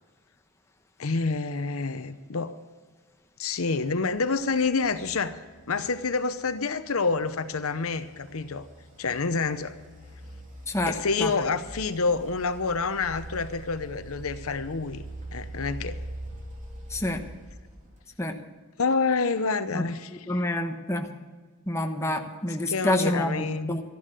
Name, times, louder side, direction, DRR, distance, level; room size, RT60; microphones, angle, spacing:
voice 1, 1.0-2.5 3.4-5.4 5.7-8.7 9.0-9.7 10.9-15.0 15.3-16.0 18.8-20.4 22.5-23.8, left 4 dB, 70° left, 11 dB, 0.8 m, -28 dB
sound 1, 3.8-18.2, right 1 dB, 35° right, 2.6 m, -44 dB
voice 2, 16.9-17.2 18.2-18.3 19.7-19.8 20.3-21.1 21.7-23.8, left 1 dB, 15° left, 4 dB, 1.0 m, -27 dB
13.5 x 11.0 x 6.7 m, 1.4 s
head